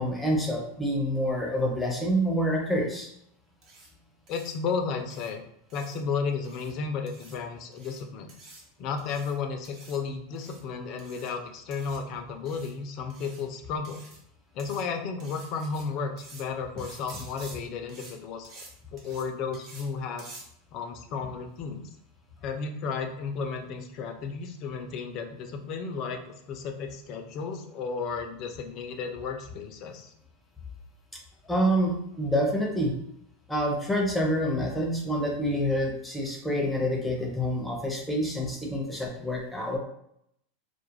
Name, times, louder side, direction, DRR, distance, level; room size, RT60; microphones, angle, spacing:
voice 1, 0.0-3.1 31.5-32.9 33.5-39.8, equal, 5° left, -1 dB, 0.6 m, -27 dB
sound 1, 3.6-3.9 4.3-4.5 5.1-5.3 5.7-6.0 6.4-6.7 7.1-7.4 7.7-8.0 8.3-8.6 9.0-9.3 9.6-10.0 10.3-10.6 11.0-11.3 11.7-12.0 12.5-12.7 13.1-13.4 13.8-14.2 14.6-14.8 15.2-15.8 16.2-16.4 16.8-17.6 17.9-18.1 18.4-18.7 19.0-19.2 19.5-19.9 20.2-20.4, right 3 dB, 45° right, 0.7 m, -49 dB
voice 2, 4.3-5.4 5.7-8.3 8.8-14.0 14.5-18.5 18.9-20.3 20.7-21.9 22.4-30.1, left 5 dB, 50° left, 5 dB, 0.4 m, -33 dB
2.3 x 2.0 x 3.0 m, 0.73 s
hypercardioid pair, 115°, 0 cm